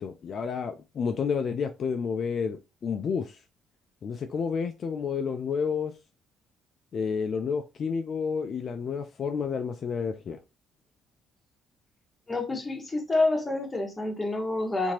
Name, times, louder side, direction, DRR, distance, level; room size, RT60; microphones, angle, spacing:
voice 1, 0.0-3.4 4.0-5.9 6.9-10.4, left 6 dB, 55° left, 0.3 m, -30 dB
voice 2, 12.3-14.9, left 2 dB, 20° left, 1.1 m, -28 dB
2.9 x 2.6 x 2.7 m
supercardioid pair, 70°, 0 cm